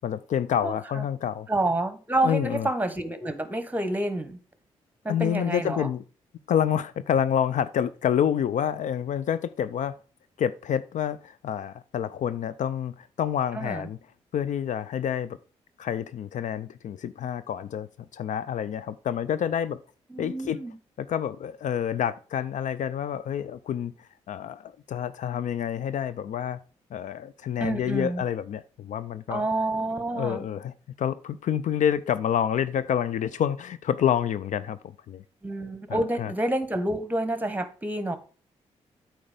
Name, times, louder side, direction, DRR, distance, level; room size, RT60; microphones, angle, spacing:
voice 1, 0.0-1.5 2.2-2.7 5.1-6.0 6.5-9.9 10.4-14.0 14.3-15.4 15.8-19.8 20.2-20.6 21.0-26.6 26.9-29.4 30.1-34.8 35.1-35.2 35.9-36.3, left 9 dB, 60° left, 0.5 m, -28 dB
voice 2, 0.6-1.0 1.5-4.4 5.0-5.9 13.5-13.9 20.1-20.7 27.6-28.2 29.3-30.4 35.4-38.2, right 1 dB, 10° right, 1.3 m, -28 dB
8.6 x 4.6 x 5.0 m
hypercardioid pair, 40°, 14 cm